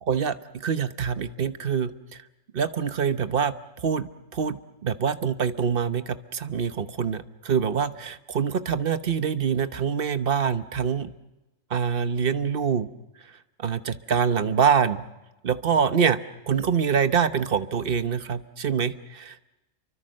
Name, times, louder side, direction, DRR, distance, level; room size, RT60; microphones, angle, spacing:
voice 1, 0.0-2.2 2.5-11.1 11.7-12.9 13.6-15.0 15.4-16.2 16.5-19.5, right 7 dB, 45° right, 11 dB, 1.1 m, -25 dB
29.0 x 24.0 x 6.5 m, 1.0 s
omnidirectional pair, 1.4 m